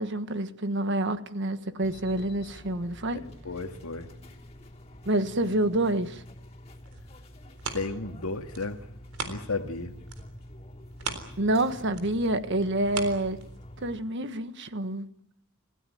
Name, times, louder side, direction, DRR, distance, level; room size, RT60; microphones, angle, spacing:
voice 1, 0.0-3.2 5.0-6.2 11.4-13.4 13.8-15.1, right 1 dB, 55° right, 1.4 m, -27 dB
sound 1, 1.8-14.0, left 1 dB, 30° left, 3.2 m, -47 dB
voice 2, 3.4-4.1 7.7-8.8 9.3-9.9, left 3 dB, 80° left, 2.0 m, -33 dB
sound 2, 6.6-9.8 10.1-13.9 14.4-14.5, right 4 dB, 90° right, 3.8 m, -40 dB
27.5 x 16.0 x 9.4 m
head